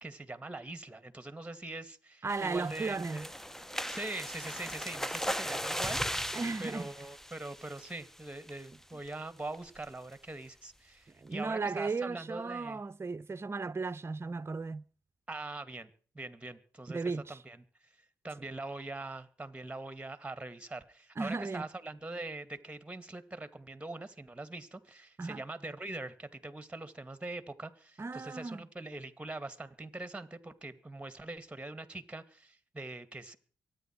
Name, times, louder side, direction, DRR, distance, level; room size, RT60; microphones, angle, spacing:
voice 1, 0.0-3.3 3.9-6.0 6.6-12.8 15.3-17.0 17.3-17.6 18.2-33.4, right 2 dB, 15° right, 2.2 m, -43 dB
voice 2, 2.2-3.3 6.3-6.9 11.1-14.8 16.9-17.4 21.2-21.7 25.2-25.4 28.0-28.7, right 4 dB, 35° right, 0.8 m, -35 dB
sound 1, 2.3-8.1 8.5-8.8 9.1-9.2 9.5-9.8, equal, 5° left, 0.9 m, -38 dB
24.0 x 10.0 x 4.7 m
supercardioid pair, 45°, 7 cm